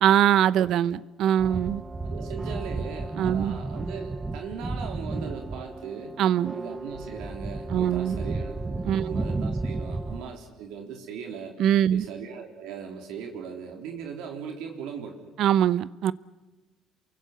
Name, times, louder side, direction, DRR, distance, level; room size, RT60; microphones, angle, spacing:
voice 1, 0.0-1.8 3.2-3.6 6.2-6.5 7.7-8.2 8.8-9.2 11.6-12.0 15.4-16.1, right 10 dB, 65° right, 0.8 m, -22 dB
sound 1, 1.4-10.3, right 2 dB, 15° right, 1.1 m, -33 dB
voice 2, 2.0-6.2 6.5-11.6 11.9-15.2, right 6 dB, 85° right, 3.7 m, -39 dB
28.5 x 23.5 x 8.0 m
cardioid pair, 115°, 0 cm